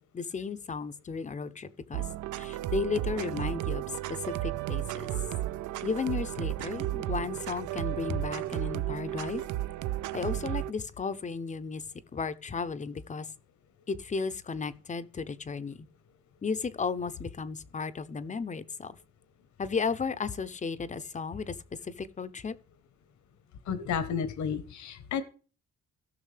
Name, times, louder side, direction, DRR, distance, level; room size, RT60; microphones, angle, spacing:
voice 1, 0.0-2.0 2.4-5.1 5.8-9.4 10.1-11.8 12.1-13.3 13.9-15.9 16.4-19.0 19.6-21.6 21.8-22.6, left 5 dB, 25° left, 0.5 m, -34 dB
sound 1, 1.9-10.7, right 15 dB, 75° right, 0.5 m, -33 dB
voice 2, 23.7-25.2, left 7 dB, 70° left, 1.0 m, -32 dB
17.0 x 6.1 x 3.3 m
cardioid pair, 120°, 31 cm